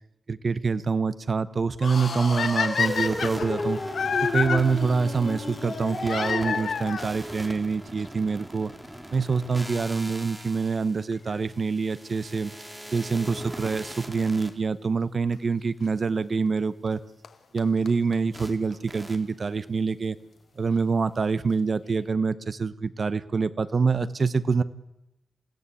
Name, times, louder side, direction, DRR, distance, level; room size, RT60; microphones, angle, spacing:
voice 1, 0.3-3.8 4.2-8.7 9.1-12.5 12.9-17.0 17.5-20.2 20.6-24.6, right 4 dB, 45° right, 14 dB, 0.9 m, -26 dB
sound 1, 1.8-6.7, left 3 dB, 45° left, 6.0 m, -33 dB
sound 2, 2.4-4.6 6.1-7.1 8.1-8.2 8.8-8.9 9.1-9.2 11.1-11.4 14.2-14.3 15.3-15.4 16.9-17.0 17.2-17.3 17.6-17.7 17.9-18.0 18.1-18.2 18.4-18.5 18.7-18.8, left 6 dB, 75° left, 1.7 m, -27 dB
sound 3, 2.8-14.5 18.3-18.5 18.9-19.2, right 1 dB, 5° right, 2.3 m, -41 dB
28.0 x 16.0 x 8.4 m, 0.95 s
wide cardioid pair, 135°, 0 cm